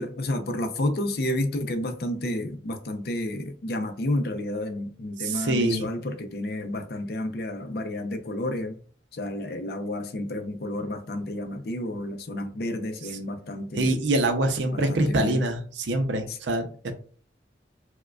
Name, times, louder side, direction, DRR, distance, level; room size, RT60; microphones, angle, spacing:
voice 1, 0.0-8.8 9.1-14.0 14.7-15.4 16.3-16.4, left 1 dB, 55° left, 0.5 m, -30 dB
voice 2, 5.2-5.9 13.8-16.9, right 2 dB, 80° right, 0.5 m, -25 dB
4.7 x 2.2 x 2.2 m
head